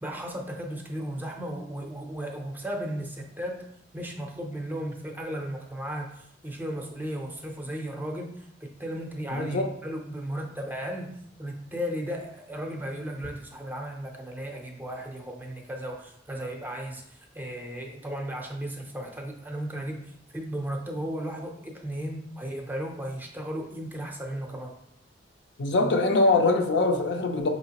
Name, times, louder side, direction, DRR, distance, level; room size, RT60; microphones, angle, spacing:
voice 1, 0.0-24.8, equal, 10° right, 1 dB, 0.5 m, -35 dB
voice 2, 9.3-9.7 25.6-27.5, left 2 dB, 65° left, 4 dB, 0.5 m, -23 dB
4.9 x 2.9 x 2.8 m, 0.74 s
head